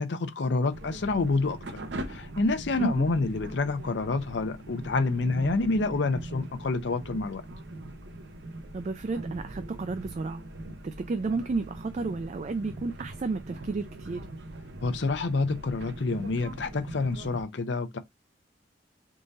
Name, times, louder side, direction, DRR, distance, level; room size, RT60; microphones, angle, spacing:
voice 1, 0.0-1.8 2.1-7.4 14.8-18.0, left 3 dB, 70° left, 0.6 m, -28 dB
sound 1, 0.7-17.4, right 1 dB, 65° right, 0.7 m, -41 dB
voice 2, 8.7-10.4 10.8-14.2, right 3 dB, 40° right, 0.3 m, -32 dB
3.7 x 2.6 x 3.9 m
head